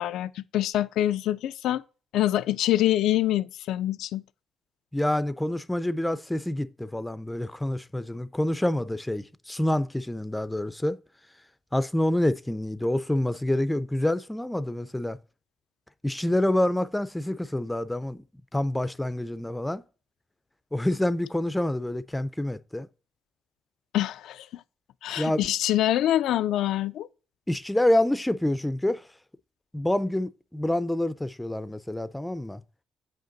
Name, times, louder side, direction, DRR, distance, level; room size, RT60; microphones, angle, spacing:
voice 1, 0.0-1.8 2.1-4.2 23.9-24.6 25.0-27.1, left 13 dB, 85° left, 0.3 m, -25 dB
voice 2, 4.9-11.0 11.7-15.2 16.0-18.2 18.5-19.8 20.7-22.9 25.2-25.4 27.5-29.0 29.7-32.6, left 1 dB, 10° left, 0.4 m, -27 dB
7.7 x 5.1 x 3.9 m
cardioid pair, 90°, 0 cm